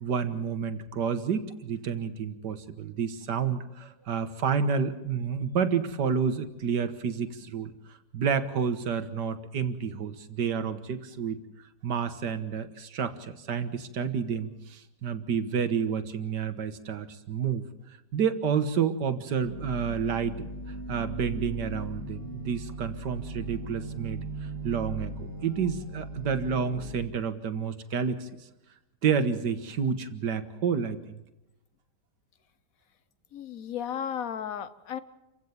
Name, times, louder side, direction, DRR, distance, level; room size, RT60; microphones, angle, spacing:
voice 1, 0.0-7.7 8.1-11.4 11.8-17.6 18.1-20.5 20.9-28.3 29.0-31.2, right 6 dB, 90° right, 10 dB, 1.9 m, -29 dB
sound 1, 19.4-26.9, right 1 dB, 10° left, 4.2 m, -38 dB
voice 2, 33.3-35.0, left 9 dB, 60° left, 14 dB, 1.2 m, -34 dB
28.0 x 16.0 x 7.2 m, 1.0 s
omnidirectional pair, 1.8 m